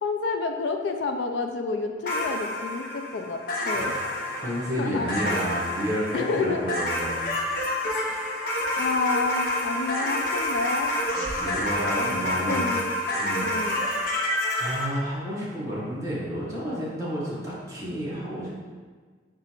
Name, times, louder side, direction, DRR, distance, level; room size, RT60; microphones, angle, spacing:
voice 1, 0.0-3.9 4.8-5.1 6.1-6.6 8.0-8.3 8.8-11.0 12.0-12.9 13.4-13.8, left 4 dB, 75° left, 5 dB, 0.3 m, -29 dB
sound 1, 2.0-14.9, left 1 dB, 55° left, 0.8 m, -28 dB
voice 2, 4.3-7.2 11.4-12.7 13.2-13.5 14.6-18.6, equal, 20° right, -7 dB, 1.1 m, -30 dB
4.8 x 2.4 x 4.4 m, 1.5 s
head